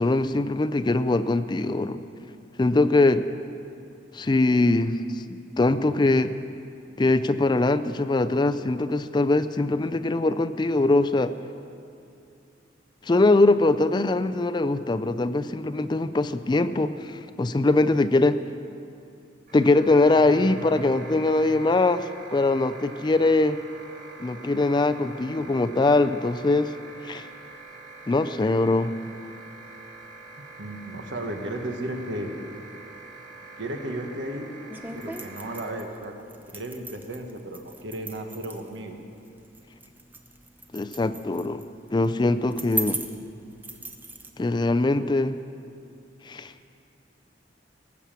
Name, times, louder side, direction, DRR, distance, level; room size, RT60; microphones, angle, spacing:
voice 1, 0.0-2.0 2.6-3.3 4.1-5.2 5.6-6.3 7.0-11.3 13.0-18.4 19.5-23.6 24.2-26.8 27.0-27.3 28.1-28.9 40.7-41.6 41.9-43.0 44.4-45.4 46.2-46.5, left 2 dB, 25° left, 12 dB, 0.4 m, -22 dB
sound 1, 19.5-35.7, right 3 dB, 45° right, 2.1 m, -45 dB
voice 2, 30.6-32.3 33.6-34.5 34.9-36.1 36.5-39.0, right 1 dB, 85° right, 3 dB, 1.4 m, -34 dB
sound 2, 34.7-44.3, right 1 dB, 10° right, 0.7 m, -39 dB
18.5 x 7.2 x 7.4 m, 2.6 s
head